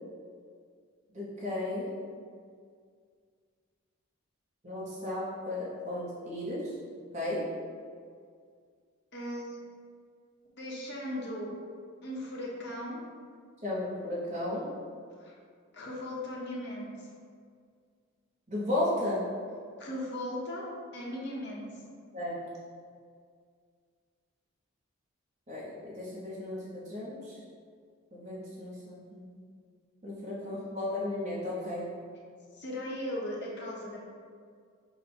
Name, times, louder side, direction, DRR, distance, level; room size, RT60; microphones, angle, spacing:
voice 1, 1.1-1.9 4.6-6.7 7.1-7.5 13.6-14.7 18.5-19.2 22.1-22.3 25.5-27.4 28.1-29.4 30.0-31.9, left 1 dB, 30° right, -7 dB, 0.8 m, -34 dB
voice 2, 9.1-9.6 10.6-11.5 12.0-13.0 15.2-15.3 15.7-17.1 19.8-20.7 20.9-21.7 30.1-30.5 32.5-34.0, left 1 dB, 50° left, -4 dB, 0.9 m, -38 dB
5.8 x 2.2 x 4.2 m, 2.1 s
head